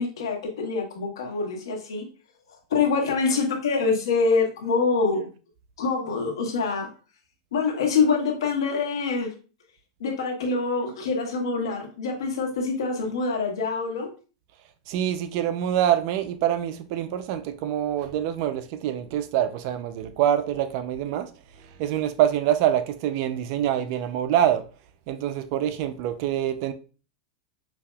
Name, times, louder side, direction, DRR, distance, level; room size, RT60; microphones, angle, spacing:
voice 1, 0.0-2.0 2.7-5.3 5.8-6.9 7.5-9.3 10.0-14.1, left 4 dB, 90° left, 1.1 m, -25 dB
voice 2, 14.9-21.3 21.8-24.6 25.1-26.7, right 11 dB, 50° right, 0.4 m, -25 dB
5.1 x 2.8 x 2.2 m
supercardioid pair, 140°, 2 cm